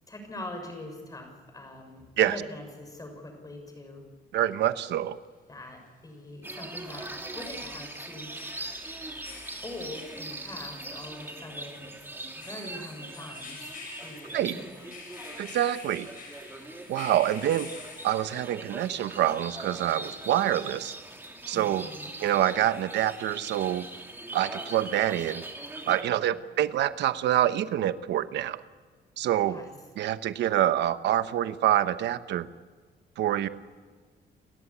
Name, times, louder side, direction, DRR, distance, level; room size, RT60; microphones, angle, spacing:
voice 1, 0.1-4.0 5.5-7.1 7.3-8.3 9.6-13.7 14.0-14.9 21.5-22.1 26.3-26.4 29.5-29.7, left 1 dB, 20° left, 4 dB, 6.6 m, -43 dB
voice 2, 4.3-5.2 14.3-14.5 15.4-16.1 16.9-17.7 18.0-20.9 21.5-21.9 22.2-23.9 24.3-25.4 25.9-28.6 29.2-29.6 30.0-32.5 33.2-33.5, right 12 dB, 90° right, 12 dB, 0.9 m, -26 dB
sound 1, 4.5-4.6 7.1-18.7, left 4 dB, 50° left, 7.2 m, -48 dB
sound 2, 6.4-26.0, right 2 dB, 10° right, 2.9 m, -41 dB
29.0 x 14.5 x 9.9 m, 1.5 s
cardioid pair, 130°, 18 cm